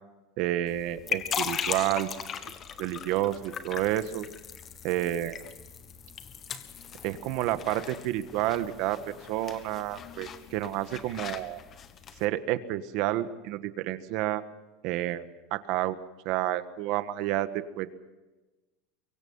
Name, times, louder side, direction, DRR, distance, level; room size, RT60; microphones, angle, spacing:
voice 1, 0.4-2.1 2.5-2.6 2.8-4.3 4.8-5.4 7.0-11.6 12.2-14.4 14.8-15.2 15.5-16.0 16.2-17.9, right 14 dB, 50° right, 11 dB, 1.5 m, -30 dB
sound 1, 0.7-12.3, left 7 dB, 25° left, 1.4 m, -39 dB
24.0 x 23.5 x 5.6 m, 1.1 s
supercardioid pair, 170°, 0 cm